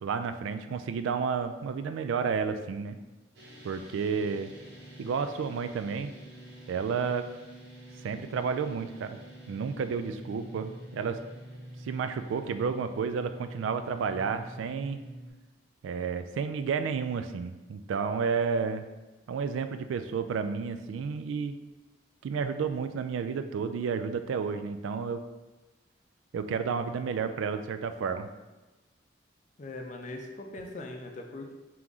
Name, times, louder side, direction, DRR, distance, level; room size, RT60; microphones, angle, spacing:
voice 1, 0.0-3.0 3.6-4.5 5.0-6.1 6.7-7.2 8.0-9.2 9.5-11.2 11.8-15.0 15.8-18.9 19.3-21.6 22.2-25.2 26.3-28.3, right 5 dB, 90° right, 9 dB, 0.3 m, -31 dB
sound 1, 3.3-15.3, right 1 dB, 65° right, 0.9 m, -46 dB
voice 2, 29.6-31.5, left 2 dB, 40° left, 2 dB, 0.5 m, -40 dB
3.8 x 3.0 x 3.5 m, 1.1 s
head